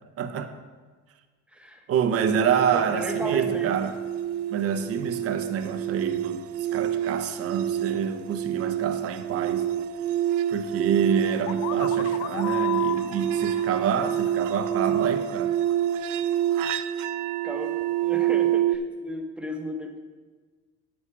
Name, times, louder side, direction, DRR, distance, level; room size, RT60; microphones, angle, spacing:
voice 1, 0.2-0.6 1.9-3.9 4.5-9.7 10.5-15.6, right 7 dB, 50° right, 8 dB, 0.9 m, -27 dB
voice 2, 1.5-1.9 2.7-3.9 10.8-11.0 17.4-20.0, equal, 5° right, 2 dB, 1.1 m, -35 dB
sound 1, 2.1-18.8, right 11 dB, 85° right, 0.5 m, -27 dB
sound 2, 11.5-15.2, left 12 dB, 65° left, 0.5 m, -35 dB
9.5 x 8.8 x 4.7 m, 1.4 s
cardioid pair, 145°, 30 cm